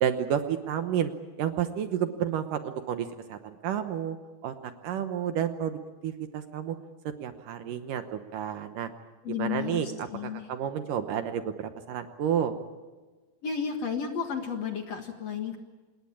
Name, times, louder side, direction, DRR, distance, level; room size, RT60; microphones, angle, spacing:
voice 1, 0.0-1.1 1.4-4.2 4.4-4.5 4.8-6.8 7.2-8.9 9.3-9.9 10.2-12.6, right 9 dB, 70° right, 8 dB, 2.4 m, -30 dB
voice 2, 9.2-10.5 13.4-15.6, left 7 dB, 50° left, 5 dB, 2.3 m, -33 dB
27.0 x 20.0 x 8.7 m, 1.3 s
omnidirectional pair, 4.5 m